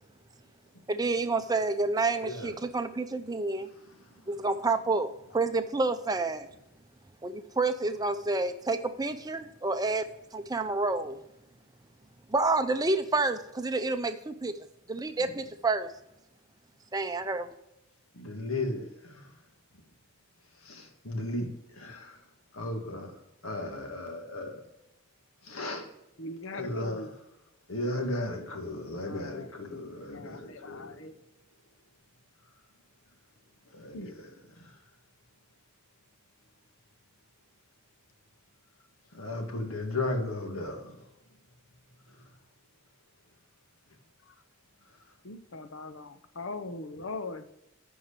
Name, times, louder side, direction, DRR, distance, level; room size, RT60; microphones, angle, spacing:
voice 1, 0.9-3.7 4.3-6.5 7.2-10.0 10.3-11.2 12.3-14.5 14.9-15.9 16.9-17.6, right 3 dB, 20° right, 0.6 m, -29 dB
voice 2, 2.2-2.5 4.1-4.3 15.2-15.3 18.1-19.3 20.6-22.2 22.5-23.1 23.4-24.6 25.4-25.9 26.5-27.0 27.7-31.0 33.7-34.1 34.6-34.7 39.1-41.0 42.1-42.2, left 2 dB, 85° left, 1.8 m, -35 dB
voice 3, 26.2-27.1 28.6-31.1 33.9-34.1 44.3-44.4 45.2-47.5, left 3 dB, 65° left, 0.8 m, -41 dB
9.9 x 4.7 x 6.7 m
head